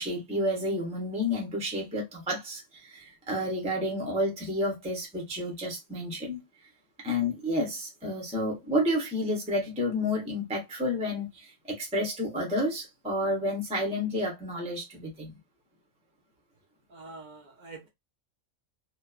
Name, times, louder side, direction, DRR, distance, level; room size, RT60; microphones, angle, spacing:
voice 1, 0.0-6.4 7.0-15.4, left 1 dB, 5° right, 0.5 m, -30 dB
voice 2, 16.9-17.9, right 3 dB, 55° right, 0.5 m, -45 dB
3.0 x 2.0 x 2.2 m
omnidirectional pair, 1.4 m